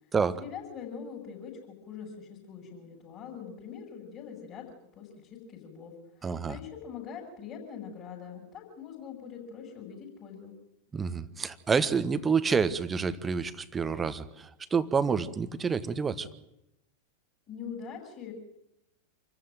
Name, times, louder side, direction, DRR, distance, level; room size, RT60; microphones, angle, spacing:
voice 1, 0.4-4.6 4.9-10.5 17.5-18.3, left 7 dB, 35° left, -4 dB, 7.9 m, -43 dB
voice 2, 6.2-6.6 10.9-16.3, right 5 dB, 15° right, 13 dB, 1.3 m, -28 dB
27.5 x 14.5 x 9.2 m, 0.85 s
figure-of-eight pair, 90°, 0 cm